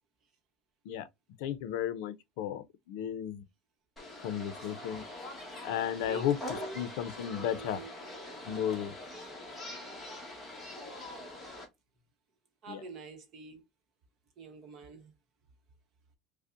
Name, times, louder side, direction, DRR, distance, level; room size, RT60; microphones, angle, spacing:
voice 1, 1.4-3.4 4.2-5.0 5.6-6.4 6.7-7.8 8.4-8.9 12.7-12.8, left 10 dB, 80° left, 0.5 m, -34 dB
sound 1, 4.0-11.7, left 1 dB, 10° left, 1.0 m, -44 dB
voice 2, 6.0-6.9 7.2-7.9 10.7-11.3 12.6-13.6 14.4-15.1, right 3 dB, 35° right, 0.9 m, -47 dB
5.2 x 2.1 x 2.5 m
cardioid pair, 175°, 0 cm